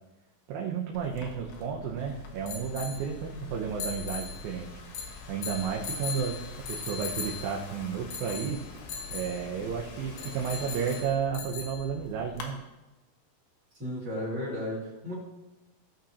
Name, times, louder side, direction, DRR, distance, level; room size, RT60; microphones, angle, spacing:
voice 1, 0.5-4.7 5.3-6.4 6.7-8.6 9.1-12.6, right 7 dB, 75° right, -1 dB, 2.6 m, -32 dB
sound 1, 0.9-12.5, left 5 dB, 90° left, 3.1 m, -40 dB
Thunderstorm / Rain, 2.0-11.0, left 4 dB, 75° left, 3.0 m, -48 dB
voice 2, 13.7-15.2, left 1 dB, 30° right, -4 dB, 2.6 m, -34 dB
16.0 x 6.4 x 2.8 m, 1.0 s
omnidirectional pair, 4.3 m